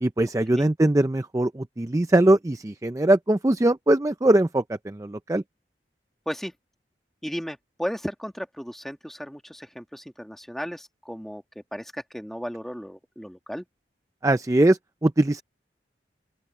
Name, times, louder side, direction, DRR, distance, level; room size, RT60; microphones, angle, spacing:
voice 1, 0.0-5.4 14.2-15.4, right 1 dB, 20° right, 0.4 m, -21 dB
voice 2, 7.2-13.7, equal, ahead, 1.9 m, -35 dB
open air
head